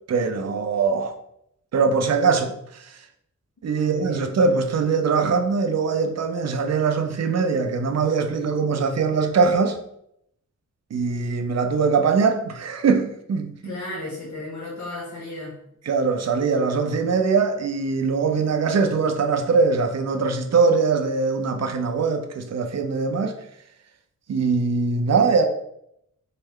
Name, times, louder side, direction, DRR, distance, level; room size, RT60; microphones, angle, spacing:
voice 1, 0.1-1.1 1.7-3.0 3.6-9.8 10.9-13.7 15.9-23.4 24.3-25.4, right 4 dB, 55° right, 0.6 m, -22 dB
voice 2, 3.7-4.3 13.6-15.6, left 2 dB, 65° left, 1.4 m, -34 dB
4.1 x 3.3 x 3.6 m
wide cardioid pair, 150°, 31 cm